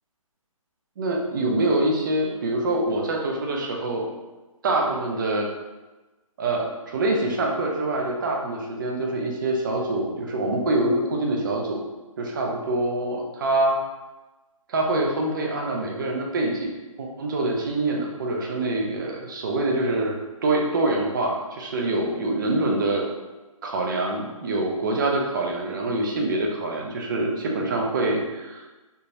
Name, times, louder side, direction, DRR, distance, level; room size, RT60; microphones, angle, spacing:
voice 1, 1.0-4.1 4.6-5.5 6.4-11.8 12.2-13.8 14.7-16.7 17.0-20.1 20.4-23.0 23.6-28.7, right 2 dB, 35° right, 0 dB, 0.5 m, -25 dB
3.7 x 2.8 x 2.5 m, 1.2 s
hypercardioid pair, 160°, 18 cm